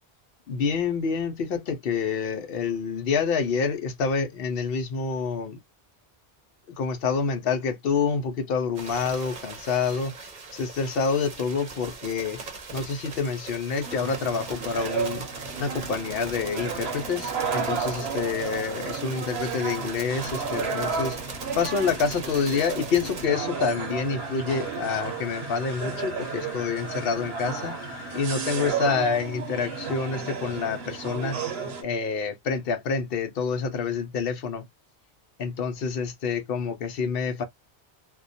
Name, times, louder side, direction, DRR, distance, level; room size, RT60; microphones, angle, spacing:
voice 1, 0.5-5.6 6.8-12.4 12.7-15.2 15.6-21.2 21.6-27.8 28.1-31.4 31.8-34.7 35.4-37.4, left 5 dB, 65° left, 0.7 m, -27 dB
sound 1, 8.7-23.3, right 4 dB, 50° right, 0.8 m, -40 dB
sound 2, 13.8-31.8, right 5 dB, 75° right, 0.9 m, -33 dB
sound 3, 23.7-28.7, left 1 dB, 40° left, 0.9 m, -42 dB
2.3 x 2.1 x 2.5 m
omnidirectional pair, 1.1 m